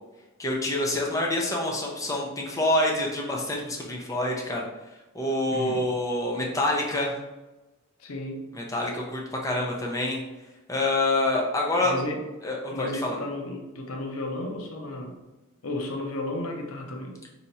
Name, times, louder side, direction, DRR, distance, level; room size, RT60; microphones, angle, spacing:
voice 1, 0.4-4.6 5.1-7.1 8.5-10.2 10.7-11.9 12.4-13.2, left 1 dB, 15° left, -1 dB, 0.6 m, -26 dB
voice 2, 5.5-5.9 8.0-8.4 11.8-12.2 12.7-15.2 15.6-17.2, left 1 dB, 85° left, 2 dB, 0.7 m, -33 dB
3.3 x 2.7 x 4.1 m, 1.0 s
head